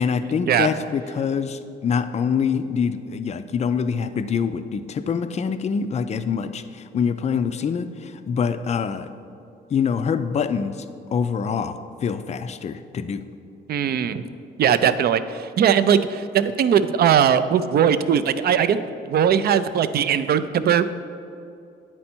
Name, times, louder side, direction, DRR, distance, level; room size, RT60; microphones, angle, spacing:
voice 1, 0.0-9.1 9.7-10.8 11.1-13.2, left 6 dB, 35° left, 11 dB, 0.4 m, -25 dB
voice 2, 13.7-14.2 14.6-20.8, right 8 dB, 50° right, 12 dB, 0.4 m, -20 dB
9.4 x 4.4 x 4.4 m, 2.6 s
cardioid pair, 90°, 20 cm